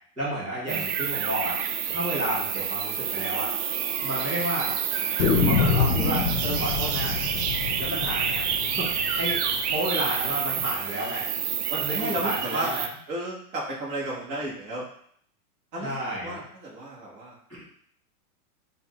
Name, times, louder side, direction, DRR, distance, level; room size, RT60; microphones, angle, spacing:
voice 1, 0.2-1.6 1.9-3.5 4.0-4.7 5.4-7.1 7.8-8.5 8.8-8.9 9.2-9.4 9.7-11.2 11.8-12.8 15.8-16.4, right 1 dB, ahead, -17 dB, 0.4 m, -31 dB
sound 1, 0.7-12.9, right 8 dB, 75° right, 0.6 m, -28 dB
sound 2, 2.4-2.5 2.8-2.9 3.2-3.3 4.0-4.5 5.2-10.0, left 5 dB, 70° left, 0.8 m, -27 dB
voice 2, 11.7-12.7 13.1-14.9 15.7-17.4, right 1 dB, 20° right, -5 dB, 1.0 m, -33 dB
5.4 x 2.3 x 2.9 m, 0.63 s
supercardioid pair, 160°, 46 cm